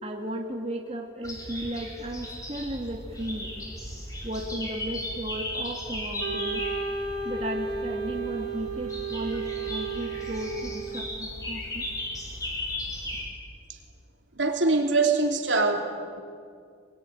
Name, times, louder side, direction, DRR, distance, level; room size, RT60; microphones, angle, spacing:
voice 1, 0.0-3.5 4.2-6.6 7.2-11.8, right 1 dB, 30° right, 0 dB, 2.2 m, -35 dB
sound 1, 1.2-13.3, left 1 dB, 20° left, 4.9 m, -36 dB
Wind instrument woodwind instrument, 6.2-11.3, right 4 dB, 85° right, 3.4 m, -33 dB
voice 2, 14.3-15.9, right 3 dB, 70° right, 3 dB, 3.0 m, -23 dB
24.0 x 22.0 x 10.0 m, 2.3 s
head